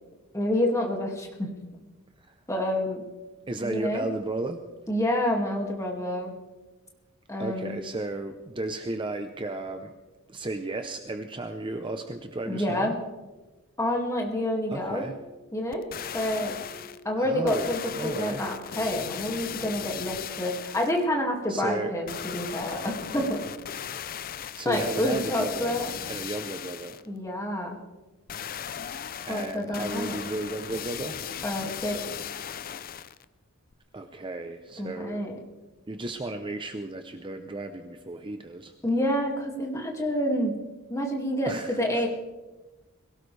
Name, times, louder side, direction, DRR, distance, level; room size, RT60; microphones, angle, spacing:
voice 1, 0.3-1.5 2.5-3.0 3.6-4.1 4.9-6.3 7.3-7.8 12.5-12.9 13.8-15.1 15.5-15.8 16.1-16.6 17.0-23.5 24.6-25.9 27.1-27.8 29.2-30.2 31.4-32.1 34.8-35.4 38.8-40.6 40.9-42.1, left 1 dB, 15° left, 0 dB, 2.2 m, -28 dB
voice 2, 3.5-4.6 7.4-9.9 10.3-12.9 14.7-15.2 17.2-18.4 21.5-21.9 24.6-27.0 29.2-31.2 33.9-35.3 35.9-38.7 41.5-42.0, right 2 dB, 20° right, 7 dB, 0.7 m, -34 dB
sound 1, 14.9-21.5, equal, 65° left, 3.6 m, -52 dB
sound 2, 15.7-17.0 17.5-21.0 22.1-27.1 28.3-33.3 33.7-33.8, left 8 dB, 40° left, 0.5 m, -37 dB
22.5 x 17.0 x 3.4 m, 1.2 s
head